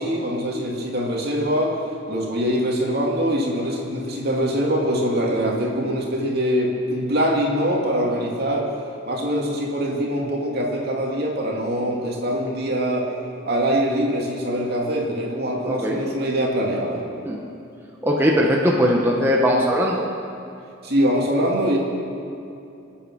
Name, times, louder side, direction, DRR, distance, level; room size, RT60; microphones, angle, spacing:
voice 1, 0.0-1.8 2.1-8.7 9.0-13.1 13.5-17.0 20.8-21.8, equal, 55° right, -2 dB, 2.8 m, -23 dB
voice 2, 15.7-16.0 17.3-17.4 18.0-20.0, equal, 10° right, -2 dB, 1.2 m, -19 dB
25.5 x 8.7 x 6.5 m, 2.7 s
head